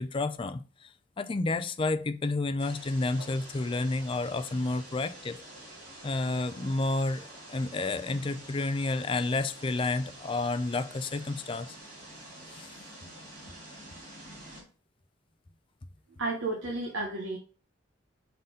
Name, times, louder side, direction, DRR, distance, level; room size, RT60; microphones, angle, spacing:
voice 1, 0.0-5.4 6.0-11.8 12.5-12.7, left 2 dB, 25° left, 0.4 m, -30 dB
sound 1, 2.6-14.6, right 1 dB, 40° right, 3.3 m, -48 dB
voice 2, 16.2-17.4, right 2 dB, 80° right, 1.2 m, -32 dB
5.6 x 4.0 x 5.3 m
head